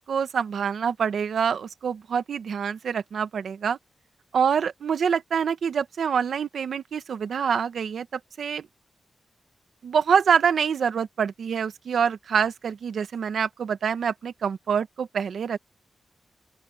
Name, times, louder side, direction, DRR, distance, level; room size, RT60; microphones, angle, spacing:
voice 1, 0.0-3.8 4.3-8.7 9.8-15.6, right 7 dB, 80° right, 1.4 m, -26 dB
open air
wide cardioid pair, 140°, 0 cm